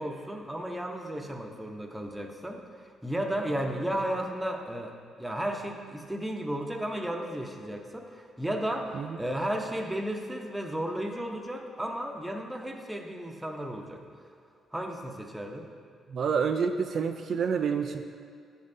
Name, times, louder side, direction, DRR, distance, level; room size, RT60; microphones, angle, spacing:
voice 1, 0.0-14.0 14.7-15.7, right 1 dB, 5° right, 2 dB, 0.7 m, -34 dB
voice 2, 16.1-18.0, right 6 dB, 60° right, 5 dB, 0.3 m, -28 dB
11.0 x 5.4 x 2.7 m, 2.1 s
cardioid pair, 90°, 0 cm